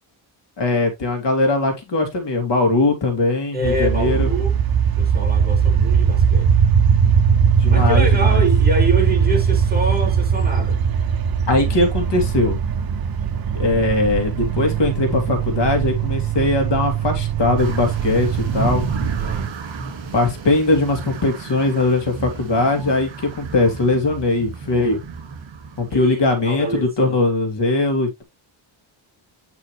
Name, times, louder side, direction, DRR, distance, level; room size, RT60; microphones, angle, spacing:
voice 1, 0.6-4.3 7.6-8.5 11.5-12.6 13.5-18.8 20.1-25.0 25.8-28.2, left 2 dB, 60° left, 2.6 m, -20 dB
voice 2, 3.5-4.5 5.0-6.6 7.7-10.8 19.2-19.6 25.9-27.3, right 1 dB, 20° right, 3.2 m, -26 dB
sound 1, 3.6-19.5, right 7 dB, 50° right, 1.0 m, -19 dB
sound 2, 17.6-26.7, right 4 dB, 70° right, 2.6 m, -32 dB
9.0 x 5.6 x 3.1 m
wide cardioid pair, 145°, 48 cm